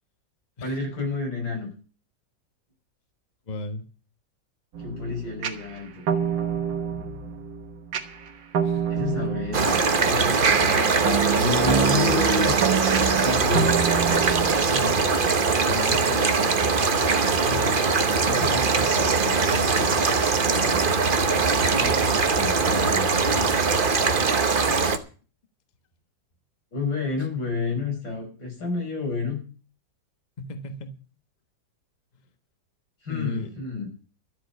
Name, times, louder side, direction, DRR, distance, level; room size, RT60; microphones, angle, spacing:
voice 1, 0.6-1.7 4.8-6.0 8.9-12.7 13.2-13.8 16.4-16.5 26.7-29.4 33.0-33.9, left 4 dB, 90° left, 3 dB, 6.1 m, -29 dB
voice 2, 3.5-3.9 8.6-8.8 9.2-9.4 14.7-15.0 15.7-16.6 17.4-17.8 18.2-20.0 20.4-21.1 21.6-23.6 30.4-30.9 33.1-33.5, left 2 dB, 25° left, 7 dB, 1.3 m, -35 dB
sound 1, 4.7-15.4, right 7 dB, 85° right, 2.0 m, -28 dB
sound 2, 9.5-25.0, right 4 dB, 35° right, 1.0 m, -21 dB
12.5 x 7.7 x 8.5 m, 0.38 s
omnidirectional pair, 1.9 m